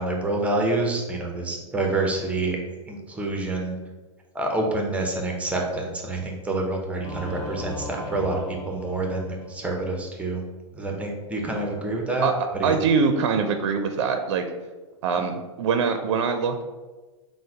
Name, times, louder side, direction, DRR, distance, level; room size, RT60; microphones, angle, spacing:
voice 1, 0.0-2.6 2.9-3.8 4.3-8.4 8.7-10.4 10.8-12.3 12.5-12.7, right 2 dB, 10° right, 1 dB, 0.6 m, -27 dB
Singing / Musical instrument, 7.0-9.9, left 2 dB, 40° left, 1.2 m, -38 dB
voice 2, 12.6-14.5 15.0-16.6, right 5 dB, 65° right, 6 dB, 0.4 m, -23 dB
3.8 x 2.1 x 4.4 m, 1.2 s
hypercardioid pair, 125°, 16 cm